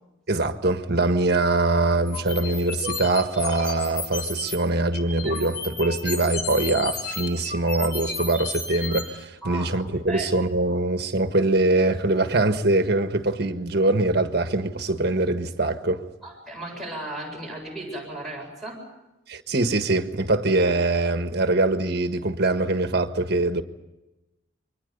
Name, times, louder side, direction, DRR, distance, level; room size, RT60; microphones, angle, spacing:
voice 1, 0.3-16.0 19.3-23.6, right 2 dB, 55° right, 1.6 m, -23 dB
sound 1, 2.1-4.6 4.9-9.0, left 3 dB, 65° left, 5.9 m, -33 dB
voice 2, 16.2-18.8, right 2 dB, ahead, 7.8 m, -35 dB
29.0 x 24.0 x 5.4 m
head